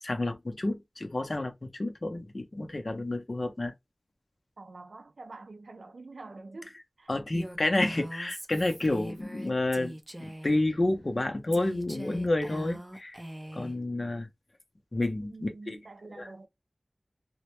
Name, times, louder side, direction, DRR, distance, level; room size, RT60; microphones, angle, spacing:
voice 1, 0.0-3.7 7.1-13.2 13.5-14.3 14.9-15.8 16.0-16.3, left 2 dB, 55° left, 0.6 m, -30 dB
voice 2, 4.6-7.1 15.2-16.5, right 3 dB, 85° right, 0.3 m, -47 dB
Female speech woman speaking, 7.3-10.6 11.5-13.8, right 1 dB, 20° right, 0.5 m, -42 dB
2.1 x 2.1 x 2.8 m
wide cardioid pair, 50°, 0 cm